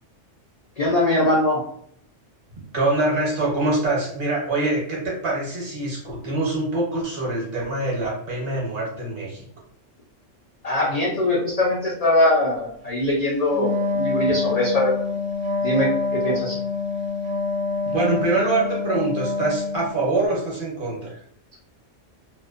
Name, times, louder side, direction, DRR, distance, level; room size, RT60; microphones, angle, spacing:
voice 1, 0.8-1.6 10.6-14.9 15.6-15.9 16.2-16.6, left 1 dB, 70° left, -4 dB, 0.3 m, -21 dB
voice 2, 2.7-9.5 17.9-21.2, right 2 dB, 45° right, -4 dB, 0.9 m, -24 dB
Wind instrument woodwind instrument, 13.5-20.0, left 3 dB, 75° right, 0.9 m, -26 dB
2.5 x 2.1 x 2.4 m, 0.65 s
omnidirectional pair, 1.3 m